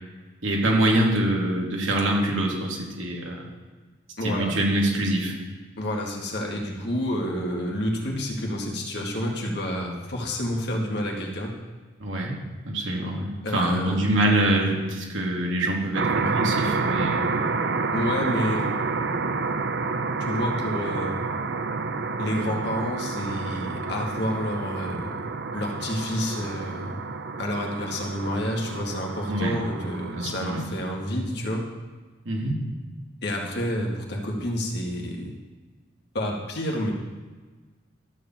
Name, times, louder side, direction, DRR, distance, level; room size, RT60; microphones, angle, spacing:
voice 1, 0.4-3.5 4.2-5.3 12.0-12.4 12.7-17.3 29.3-29.6 30.1-30.6 32.3-32.6, right 1 dB, 85° right, -1 dB, 2.4 m, -25 dB
voice 2, 4.2-4.5 5.8-11.6 13.4-14.2 17.9-18.7 20.3-21.2 22.2-25.1 25.5-27.0 27.4-31.7 33.2-35.3 36.1-36.9, equal, 60° left, 0 dB, 2.0 m, -29 dB
sound 1, 15.9-30.7, right 4 dB, 60° right, 0.6 m, -29 dB
13.0 x 4.8 x 7.3 m, 1.4 s
head